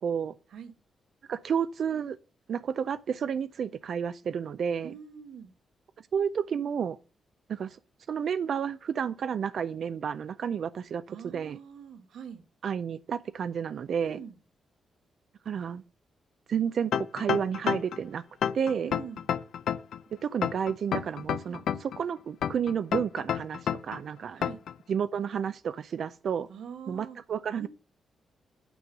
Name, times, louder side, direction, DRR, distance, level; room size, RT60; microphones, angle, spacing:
voice 1, 0.0-0.3 1.3-2.2 2.5-4.9 6.0-7.0 7.5-7.8 8.1-11.6 12.6-14.2 15.5-15.8 16.5-18.2 18.5-18.9 20.1-24.4 24.9-26.5 26.9-27.7, right 7 dB, 55° right, 0.3 m, -31 dB
voice 2, 4.8-5.5 11.1-12.4 14.0-14.4 18.8-19.2 21.5-21.6 24.4-24.6 26.5-27.2 27.6-27.7, right 7 dB, 80° right, 1.3 m, -44 dB
sound 1, 16.9-18.0 18.4-20.0 20.4-22.0 22.4-24.0 24.4-24.7, left 9 dB, 75° left, 0.5 m, -29 dB
9.1 x 5.3 x 5.9 m
wide cardioid pair, 165°, 0 cm